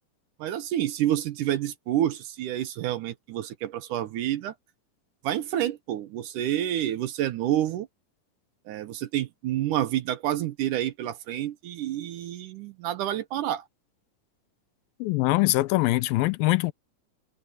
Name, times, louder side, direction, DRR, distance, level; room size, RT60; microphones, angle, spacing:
voice 1, 0.4-4.5 5.2-7.9 8.7-13.7, right 12 dB, 70° right, 2.2 m, -28 dB
voice 2, 15.0-16.7, left 20 dB, 85° left, 2.5 m, -23 dB
omnidirectional pair, 4.1 m